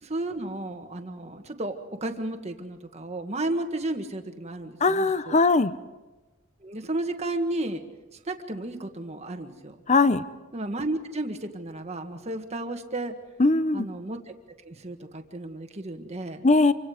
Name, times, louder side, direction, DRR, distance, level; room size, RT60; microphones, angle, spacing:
voice 1, 0.0-5.5 6.6-7.8 8.1-9.8 10.5-13.2 13.7-14.3 14.6-16.4, right 2 dB, 30° right, 6 dB, 1.7 m, -33 dB
voice 2, 4.8-5.7 9.9-10.2 13.4-13.9 16.4-16.7, left 3 dB, 35° left, 14 dB, 0.7 m, -20 dB
27.0 x 24.5 x 5.0 m, 1.2 s
head